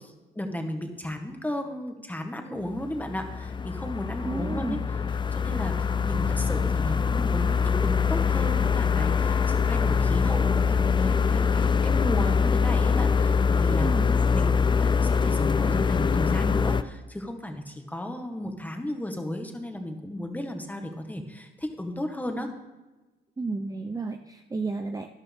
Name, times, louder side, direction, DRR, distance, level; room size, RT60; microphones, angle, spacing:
voice 1, 0.0-4.8 5.1-7.6 7.8-13.9 14.3-22.5, left 1 dB, 10° left, 4 dB, 1.7 m, -34 dB
sound 1, 2.8-16.8, left 6 dB, 25° left, 0.4 m, -24 dB
voice 2, 4.2-4.9 13.8-14.2 23.4-25.1, right 3 dB, 20° right, 5 dB, 0.7 m, -32 dB
12.5 x 11.0 x 3.6 m, 1.1 s
cardioid pair, 90°, 20 cm